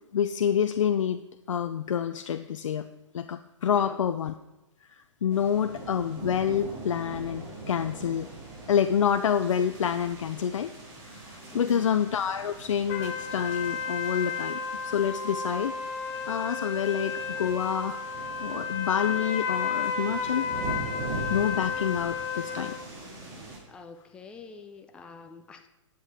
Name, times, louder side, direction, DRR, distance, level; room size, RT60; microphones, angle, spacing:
voice 1, 0.1-1.2 1.5-2.9 3.1-4.3 5.2-8.3 8.7-10.7 11.0-11.2 11.5-15.7 16.3-18.0 18.4-20.5 21.3-22.7, left 8 dB, 75° left, 9 dB, 0.5 m, -27 dB
voice 2, 3.7-4.1 11.5-11.9 23.7-25.7, left 4 dB, 5° left, 6 dB, 0.4 m, -47 dB
sound 1, 5.3-23.6, right 2 dB, 20° right, 2.4 m, -42 dB
sound 2, 12.9-22.8, left 5 dB, 30° left, 1.0 m, -33 dB
11.0 x 7.6 x 3.5 m, 1.0 s
hypercardioid pair, 145°, 16 cm